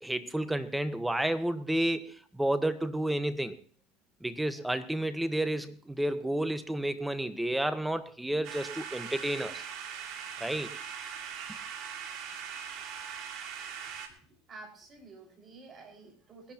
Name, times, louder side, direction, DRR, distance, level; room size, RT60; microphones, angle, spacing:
voice 1, 0.0-3.6 4.2-9.6 10.4-10.7, right 1 dB, 5° right, 11 dB, 1.3 m, -31 dB
sound 1, 8.4-14.1, right 7 dB, 55° right, 2.6 m, -41 dB
voice 2, 14.5-16.5, right 3 dB, 35° right, 3 dB, 5.4 m, -50 dB
22.0 x 11.5 x 3.0 m, 0.43 s
hypercardioid pair, 95°, 0 cm